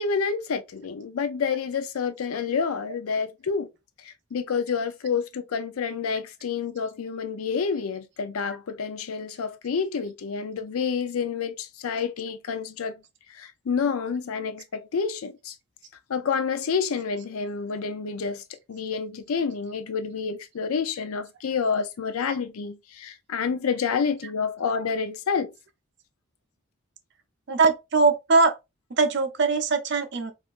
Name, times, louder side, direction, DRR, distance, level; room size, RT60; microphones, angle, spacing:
voice 1, 0.0-3.7 4.0-12.9 13.3-15.5 16.1-18.4 18.7-25.5, left 5 dB, 75° left, 0.4 m, -28 dB
voice 2, 27.5-28.5 29.0-30.3, right 4 dB, 50° right, 0.5 m, -21 dB
3.5 x 2.5 x 2.4 m
head